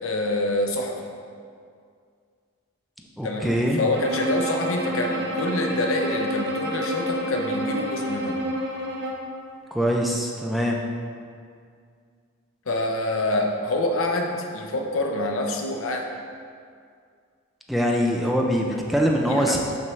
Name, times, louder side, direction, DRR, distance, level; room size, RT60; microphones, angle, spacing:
voice 1, 0.0-1.0 3.2-8.4 12.7-16.0 19.2-19.6, left 1 dB, 80° left, 2 dB, 0.7 m, -26 dB
voice 2, 3.2-3.8 9.7-10.8 17.7-19.6, equal, ahead, -1 dB, 0.4 m, -23 dB
Bowed string instrument, 3.9-9.3, equal, 55° right, 0.7 m, -29 dB
5.9 x 5.9 x 3.1 m, 2.2 s
head